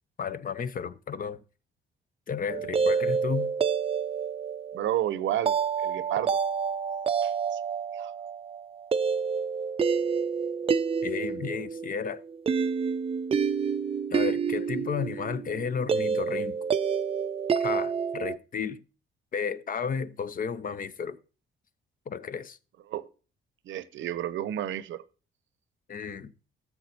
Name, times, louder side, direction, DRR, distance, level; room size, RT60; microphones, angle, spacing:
voice 1, 0.2-1.4 2.3-3.5 11.0-12.2 14.1-16.6 17.5-18.8 19.3-21.2 22.1-22.6 25.9-26.3, left 6 dB, 45° left, 0.7 m, -33 dB
sound 1, 2.5-18.4, right 6 dB, 30° right, 0.4 m, -28 dB
voice 2, 4.7-6.4 7.2-7.6 7.9-8.1 22.9-23.0 23.7-25.0, right 12 dB, 75° right, 0.7 m, -31 dB
15.5 x 7.1 x 2.8 m
cardioid pair, 90°, 20 cm